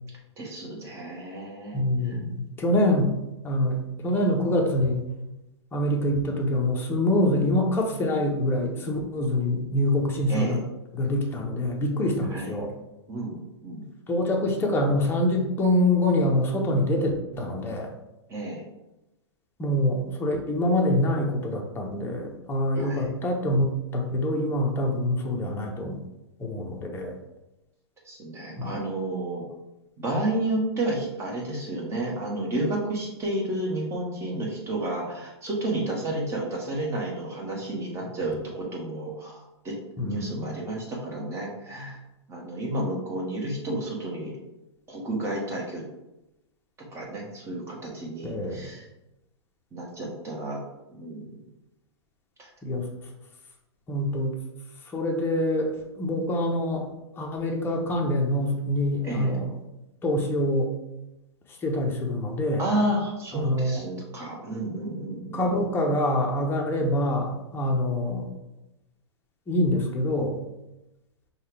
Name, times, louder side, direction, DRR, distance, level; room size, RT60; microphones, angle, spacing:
voice 1, 0.4-1.8 10.3-10.6 12.3-12.5 13.1-13.8 18.3-18.6 22.8-23.1 28.1-29.4 30.0-39.4 39.6-42.0 42.3-44.3 44.9-45.8 46.9-48.8 49.7-50.6 50.9-51.3 52.4-52.5 59.0-59.3 62.6-65.6, right 1 dB, 20° right, -2 dB, 1.4 m, -31 dB
voice 2, 1.7-3.1 3.4-5.0 5.7-10.6 10.9-12.7 14.1-17.9 19.6-26.0 26.4-27.2 40.0-40.4 48.2-48.6 52.6-52.9 53.9-54.3 54.9-56.9 57.2-59.5 60.0-60.7 61.6-62.6 63.3-63.8 65.3-68.3 69.5-70.4, left 1 dB, 15° left, 0 dB, 0.8 m, -25 dB
5.4 x 2.4 x 3.3 m, 0.94 s
hypercardioid pair, 125°, 15 cm